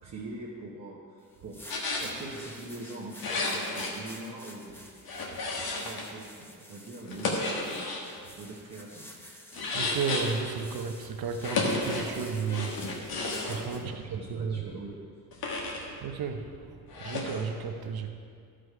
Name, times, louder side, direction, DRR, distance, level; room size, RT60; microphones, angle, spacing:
voice 1, 0.0-5.0 5.5-7.9 8.3-9.1 13.2-14.9, right 2 dB, 45° right, -5 dB, 1.0 m, -43 dB
sound 1, 1.3-13.8, equal, 5° left, 0.8 m, -50 dB
sound 2, 1.7-2.1 3.2-3.9 5.0-6.1 7.0-8.0 9.5-10.5 11.4-12.1 12.5-13.6 15.3-15.8 16.9-17.4, left 3 dB, 90° left, 1.5 m, -32 dB
voice 2, 9.7-13.1 13.5-14.6 15.6-15.7 16.0-18.1, right 6 dB, 90° right, 6 dB, 0.8 m, -34 dB
13.0 x 5.0 x 4.8 m, 2.3 s
wide cardioid pair, 170°, 35 cm